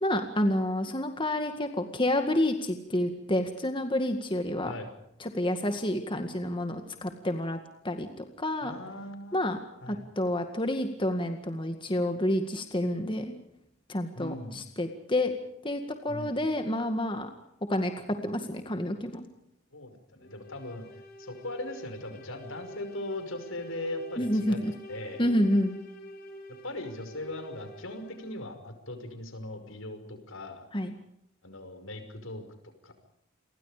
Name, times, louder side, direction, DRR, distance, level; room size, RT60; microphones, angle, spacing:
voice 1, 0.0-4.7 5.2-7.6 7.8-8.7 9.3-9.6 9.9-13.3 13.9-15.3 15.6-17.3 17.7-17.9 18.2-19.2 24.2-24.7 25.2-25.8 30.7-30.9, left 1 dB, 25° left, 6 dB, 2.0 m, -29 dB
voice 2, 8.6-9.5 9.8-10.0 14.1-14.6 16.1-16.4 19.7-20.9 21.2-24.6 24.9-25.3 26.6-30.7 31.4-32.5 32.8-32.9, left 1 dB, 75° left, 8 dB, 5.6 m, -39 dB
sound 1, 20.2-28.6, equal, 50° left, 5.2 m, -47 dB
29.5 x 23.5 x 5.1 m, 0.77 s
head